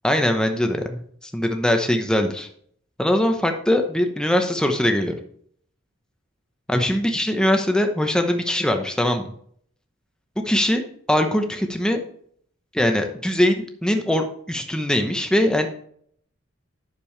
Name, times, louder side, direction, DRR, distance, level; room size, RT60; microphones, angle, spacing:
voice 1, 0.0-2.5 3.0-5.1 6.7-9.3 10.5-10.8 11.1-12.0 12.7-15.7, left 1 dB, 5° left, 4 dB, 0.9 m, -21 dB
10.0 x 6.9 x 3.3 m, 0.63 s
head